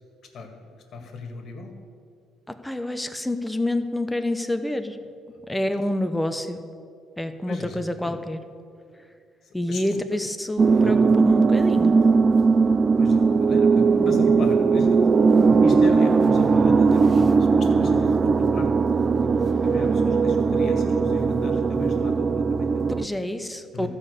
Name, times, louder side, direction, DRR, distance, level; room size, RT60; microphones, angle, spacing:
voice 1, 0.9-1.7 7.5-8.1 9.4-9.8 10.6-10.9 13.0-15.0 15.6-23.1 23.7-23.9, left 3 dB, 55° left, 3 dB, 2.0 m, -36 dB
voice 2, 2.5-5.0 5.5-6.6 7.2-8.5 9.5-11.9 23.0-23.9, left 1 dB, 5° left, 8 dB, 0.8 m, -28 dB
sound 1, 10.6-23.1, right 4 dB, 35° right, 0.3 m, -19 dB
13.0 x 5.6 x 8.2 m, 2.3 s
supercardioid pair, 80°, 0 cm